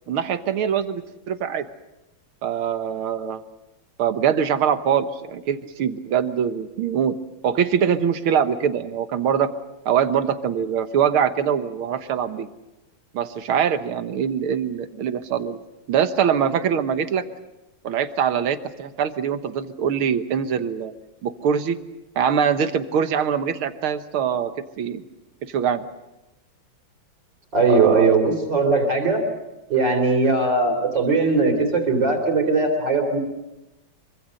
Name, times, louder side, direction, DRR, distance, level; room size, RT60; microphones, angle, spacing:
voice 1, 0.1-1.7 2.4-3.4 4.0-7.1 7.4-9.5 9.9-12.5 13.1-15.6 15.9-17.3 17.8-20.9 21.2-21.8 22.2-24.5 24.8-25.0 25.4-25.8 27.7-28.1, right 8 dB, 80° right, 10 dB, 2.1 m, -23 dB
voice 2, 27.5-29.2 29.7-33.2, right 3 dB, 60° right, 3 dB, 4.2 m, -19 dB
25.5 x 24.5 x 6.5 m, 0.98 s
omnidirectional pair, 2.3 m